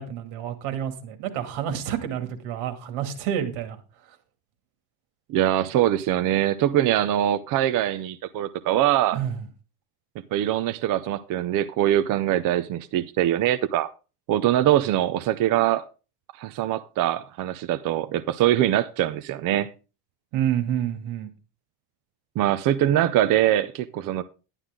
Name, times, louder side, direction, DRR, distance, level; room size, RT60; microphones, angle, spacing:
voice 1, 0.0-3.8 4.1-4.2 9.1-9.4 20.3-21.3, right 9 dB, 75° right, 2.5 m, -29 dB
voice 2, 5.3-9.2 10.3-13.9 14.3-15.8 16.4-19.7 22.4-24.2, right 12 dB, 45° right, 0.6 m, -23 dB
11.5 x 11.0 x 3.7 m
cardioid pair, 170°, 48 cm